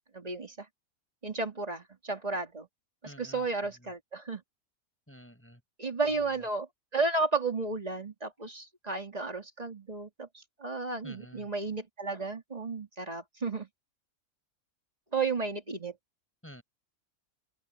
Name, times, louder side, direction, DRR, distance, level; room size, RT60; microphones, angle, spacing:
voice 1, 0.1-0.7 1.2-2.7 3.0-4.4 5.8-10.3 10.6-13.7 15.1-15.9, right 3 dB, 25° right, 2.5 m, -33 dB
voice 2, 3.0-3.9 5.1-5.6 6.1-6.4 11.0-11.5 16.4-16.6, equal, 10° left, 7.6 m, -51 dB
open air
omnidirectional pair, 1.5 m